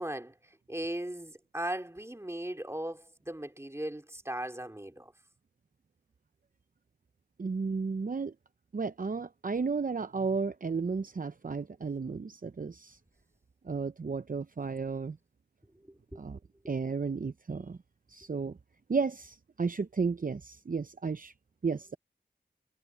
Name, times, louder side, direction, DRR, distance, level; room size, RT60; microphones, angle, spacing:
voice 1, 0.0-5.1 15.9-16.2, right 1 dB, 15° right, 3.2 m, -38 dB
voice 2, 7.4-8.3 8.7-13.0 13.6-15.2 16.2-16.4 16.7-17.8 18.1-18.6 18.9-21.3 21.6-22.0, right 4 dB, 50° right, 0.7 m, -33 dB
cardioid pair, 45°, 18 cm